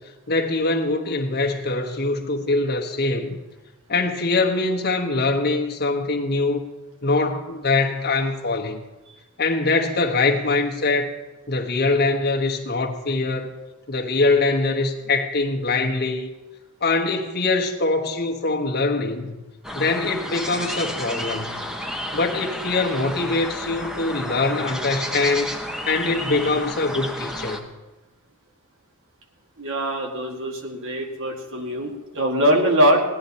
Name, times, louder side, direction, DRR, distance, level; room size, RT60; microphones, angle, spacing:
voice 1, 0.3-3.4 3.9-6.6 7.0-8.8 9.4-11.1 11.5-13.5 13.9-16.3 16.8-19.4 19.7-21.6 22.1-25.5 25.9-27.7, left 3 dB, 45° left, 1.2 m, -23 dB
sound 1, 19.6-27.6, left 1 dB, 5° right, 1.1 m, -31 dB
voice 2, 29.6-33.0, equal, 60° right, 2.1 m, -22 dB
17.0 x 11.5 x 4.3 m
head